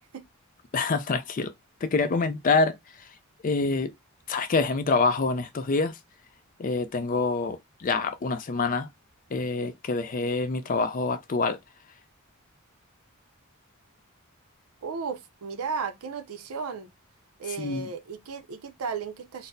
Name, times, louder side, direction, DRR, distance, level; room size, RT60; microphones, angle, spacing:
voice 1, 0.7-1.5 1.8-3.1 3.4-3.9 4.3-6.0 6.6-8.9 9.3-11.6 17.6-17.9, left 4 dB, 40° left, 0.4 m, -26 dB
voice 2, 14.8-16.9 17.4-19.5, right 5 dB, 75° right, 0.5 m, -34 dB
4.1 x 2.0 x 2.5 m
head